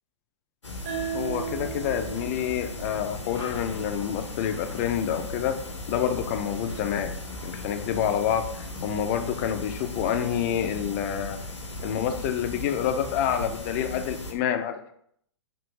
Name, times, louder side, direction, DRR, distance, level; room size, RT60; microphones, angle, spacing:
sound 1, 0.6-14.3, left 1 dB, 80° left, 0.7 m, -37 dB
sound 2, 0.9-4.1, right 8 dB, 45° right, 1.4 m, -37 dB
voice 1, 1.1-5.5 5.9-7.1 7.4-8.4 8.8-11.4 11.8-14.9, left 9 dB, 30° left, 8 dB, 0.3 m, -28 dB
3.2 x 2.6 x 3.1 m, 0.67 s
figure-of-eight pair, 105°, 15 cm